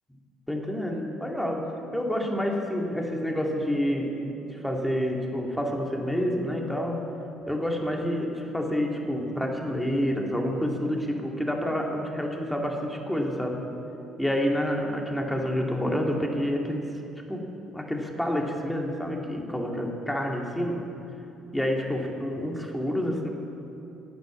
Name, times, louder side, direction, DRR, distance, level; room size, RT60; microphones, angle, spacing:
voice 1, 0.5-7.0 7.5-13.6 14.2-16.9 17.3-17.5 17.7-20.9 21.5-23.3, equal, 5° left, 1 dB, 2.3 m, -28 dB
13.5 x 9.1 x 7.2 m, 3.0 s
hypercardioid pair, 55°, 0 cm